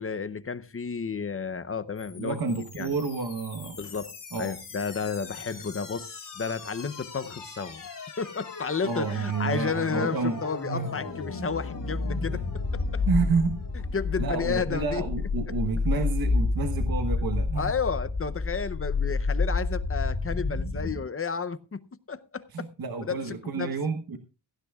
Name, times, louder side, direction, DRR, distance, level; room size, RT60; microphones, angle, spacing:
voice 1, 0.0-2.4 2.8-2.9 3.8-7.9 8.2-12.4 12.7-13.0 13.9-15.0 17.6-22.7 23.0-23.8, left 5 dB, 30° left, 0.6 m, -32 dB
sound 1, 2.0-21.0, left 3 dB, 45° left, 3.4 m, -31 dB
voice 2, 2.2-3.8 4.3-4.5 8.8-10.9 12.3-12.4 13.1-13.6 14.2-17.7 22.5-24.2, right 4 dB, 55° right, 1.1 m, -30 dB
16.5 x 15.5 x 2.3 m
wide cardioid pair, 180°, 44 cm